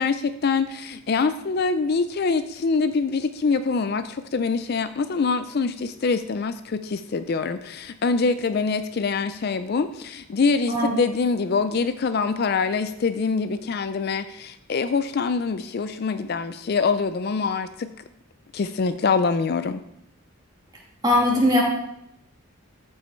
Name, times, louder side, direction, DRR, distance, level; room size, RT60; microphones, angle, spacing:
voice 1, 0.0-17.9 18.5-19.8, left 4 dB, 45° left, 11 dB, 0.4 m, -24 dB
voice 2, 21.0-21.6, left 1 dB, 20° right, -3 dB, 2.5 m, -19 dB
14.0 x 5.6 x 4.4 m, 0.80 s
head